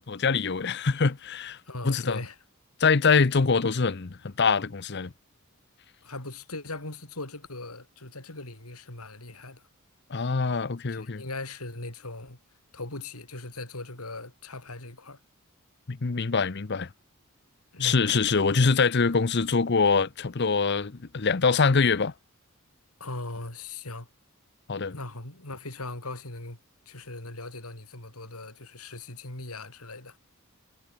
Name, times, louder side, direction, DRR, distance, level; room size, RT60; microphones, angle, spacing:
voice 1, 0.0-1.6 1.8-2.2 2.8-5.1 10.1-11.2 15.9-16.9 17.8-22.1 24.7-25.0, left 4 dB, 50° left, 0.7 m, -24 dB
voice 2, 1.7-2.4 6.0-9.7 10.9-12.4 12.7-15.2 17.7-18.1 23.0-24.1 24.9-26.6 26.9-30.2, left 2 dB, 85° left, 5.4 m, -39 dB
head